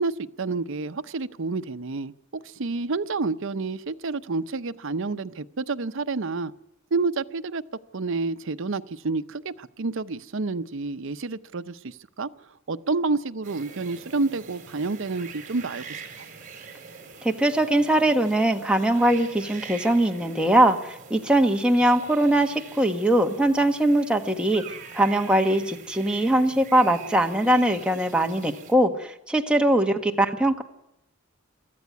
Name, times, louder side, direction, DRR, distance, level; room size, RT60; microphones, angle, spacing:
voice 1, 0.0-6.5 6.9-7.6 7.9-12.3 12.7-16.0, right 3 dB, 65° right, 12 dB, 0.7 m, -29 dB
sound 1, 13.4-28.7, right 6 dB, 40° right, 3.8 m, -44 dB
voice 2, 17.2-24.6 24.9-30.6, right 1 dB, 5° right, 3 dB, 1.4 m, -21 dB
23.5 x 14.5 x 9.5 m, 0.87 s
head